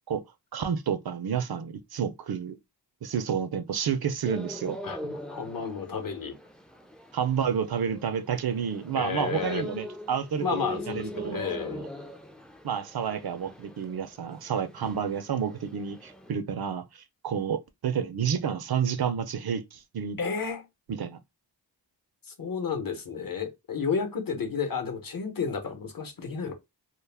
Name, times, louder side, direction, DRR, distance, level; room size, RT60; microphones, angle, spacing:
voice 1, 0.5-2.6 3.0-4.8 7.1-11.9 12.6-20.2 20.9-21.2, right 7 dB, 60° right, 0.5 m, -30 dB
sound 1, 4.2-16.3, left 1 dB, ahead, 0.4 m, -41 dB
voice 2, 4.8-6.3 8.9-9.6 10.4-11.8 20.2-20.6 22.4-26.5, left 5 dB, 50° left, 0.9 m, -32 dB
2.3 x 2.0 x 3.3 m
cardioid pair, 55°, 43 cm